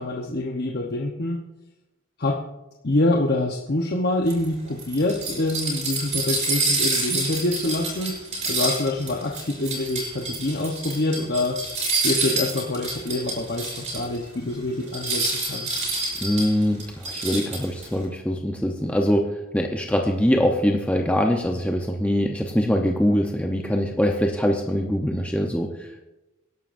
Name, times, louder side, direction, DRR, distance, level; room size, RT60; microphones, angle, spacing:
voice 1, 0.0-1.4 2.2-2.4 2.8-8.2 8.5-11.6 11.9-15.8, left 2 dB, 50° left, 1 dB, 0.9 m, -26 dB
sound 1, 4.3-14.2 14.5-14.6 14.9-17.9, right 2 dB, 30° right, 6.1 m, -27 dB
voice 2, 16.2-26.0, equal, 5° left, 1 dB, 0.7 m, -23 dB
25.5 x 11.5 x 2.6 m, 1.0 s
head